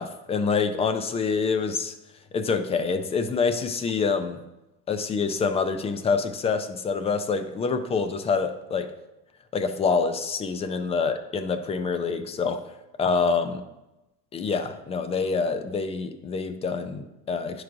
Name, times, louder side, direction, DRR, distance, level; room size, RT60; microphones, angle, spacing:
voice 1, 0.0-1.9 2.3-4.4 4.9-8.9 9.5-12.6 13.0-13.6 14.3-17.6, left 5 dB, 20° left, 9 dB, 0.4 m, -26 dB
10.0 x 4.7 x 2.5 m, 0.99 s
supercardioid pair, 130°, 30 cm